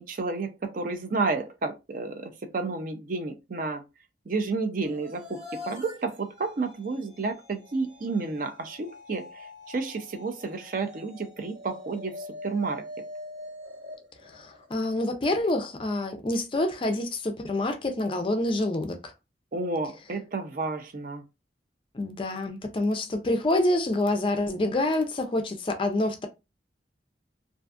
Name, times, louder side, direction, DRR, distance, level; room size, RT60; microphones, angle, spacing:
voice 1, 0.0-3.8 4.3-12.8 19.5-21.2, right 3 dB, 45° right, 0.4 m, -31 dB
sound 1, 4.8-15.0, left 2 dB, 70° right, 1.3 m, -44 dB
voice 2, 14.2-19.1 21.9-26.3, left 1 dB, 30° left, 0.4 m, -27 dB
2.5 x 2.3 x 2.4 m
head